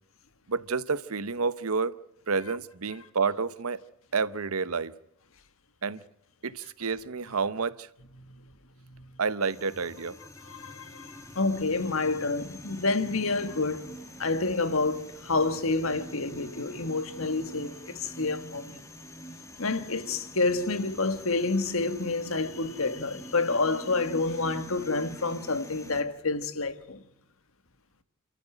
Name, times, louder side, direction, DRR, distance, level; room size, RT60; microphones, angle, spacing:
voice 1, 0.5-1.9 2.3-3.8 4.1-4.9 5.8-6.0 6.4-7.9 9.2-10.2, right 4 dB, 75° right, 0.9 m, -29 dB
sound 1, 9.4-26.0, equal, 15° left, 2.2 m, -46 dB
voice 2, 10.4-18.8 19.6-27.0, left 3 dB, 65° left, 1.6 m, -29 dB
28.0 x 14.0 x 9.0 m
head